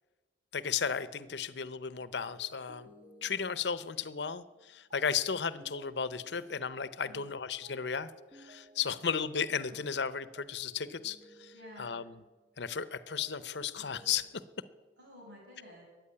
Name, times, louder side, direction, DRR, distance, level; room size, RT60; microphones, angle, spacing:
voice 1, 0.5-2.9 3.2-12.1 12.6-14.3, left 6 dB, 70° left, 15 dB, 0.8 m, -35 dB
sound 1, 2.2-7.3 7.6-12.6 12.9-15.1, right 1 dB, 30° right, 2.1 m, -59 dB
voice 2, 11.5-12.0 15.0-15.9, left 1 dB, 85° right, -2 dB, 6.9 m, -52 dB
14.0 x 9.3 x 9.8 m, 1.2 s
head